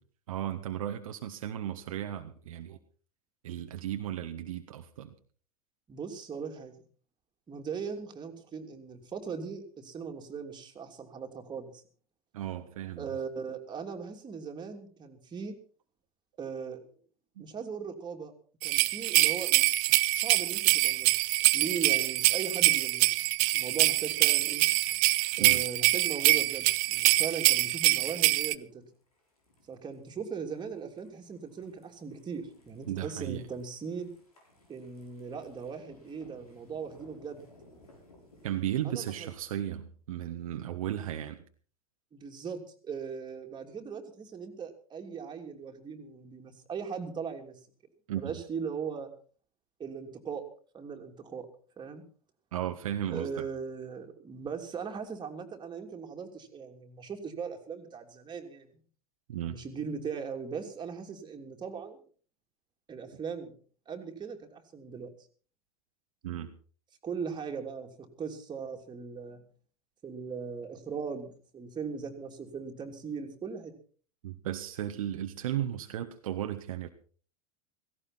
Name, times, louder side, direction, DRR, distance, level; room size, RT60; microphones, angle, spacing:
voice 1, 0.3-2.8 3.4-5.1 12.3-13.1 17.4-17.5 25.4-25.6 32.9-33.4 38.4-41.4 48.1-48.3 52.5-53.4 59.3-59.6 66.2-66.5 74.2-76.9, right 11 dB, 65° right, 6 dB, 1.3 m, -35 dB
voice 2, 5.9-6.7 7.5-11.8 13.0-15.6 16.4-16.8 17.4-18.3 18.6-19.6 20.1-21.2 21.5-23.2 23.5-24.6 25.4-28.8 29.7-34.1 34.7-37.4 38.8-39.3 42.1-47.6 48.1-49.1 49.8-50.5 50.7-51.5 51.8-52.0 53.1-58.8 59.5-62.0 62.9-63.5 63.9-65.1 67.0-69.4 70.0-73.7, right 6 dB, 25° right, 3 dB, 3.0 m, -39 dB
sound 1, 18.6-28.5, right 23 dB, 45° right, 0.7 m, -25 dB
sound 2, 28.0-38.8, left 1 dB, 80° left, 6.3 m, -60 dB
17.0 x 16.5 x 4.3 m, 0.42 s
figure-of-eight pair, 85°, 19 cm